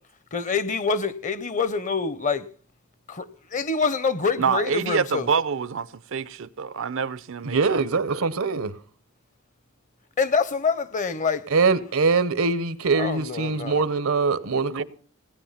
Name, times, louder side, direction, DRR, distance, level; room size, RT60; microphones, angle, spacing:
voice 1, 0.3-2.5 3.1-5.3 10.2-11.4 12.9-13.9, left 5 dB, 35° left, 0.8 m, -26 dB
voice 2, 4.4-8.2 14.7-14.8, right 6 dB, 65° right, 0.6 m, -27 dB
voice 3, 7.4-8.8 11.5-14.8, right 4 dB, 80° right, 1.0 m, -23 dB
18.0 x 9.9 x 5.7 m
head